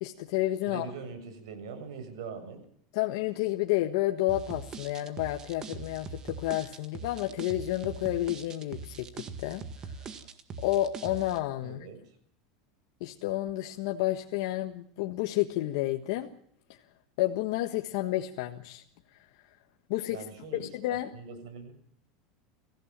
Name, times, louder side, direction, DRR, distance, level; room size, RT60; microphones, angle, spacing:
voice 1, 0.0-0.9 2.9-10.1 10.6-11.9 13.0-16.3 16.7-16.8 17.2-18.8 19.1-19.2 19.9-20.2 20.6-21.1, left 15 dB, 65° left, 4 dB, 1.5 m, -30 dB
voice 2, 0.7-2.6 11.6-12.0 20.1-21.7, right 5 dB, 85° right, 8 dB, 7.2 m, -42 dB
sound 1, 4.3-11.4, right 5 dB, 25° right, 1.8 m, -42 dB
24.0 x 16.0 x 7.5 m, 0.64 s
supercardioid pair, 165°, 3 cm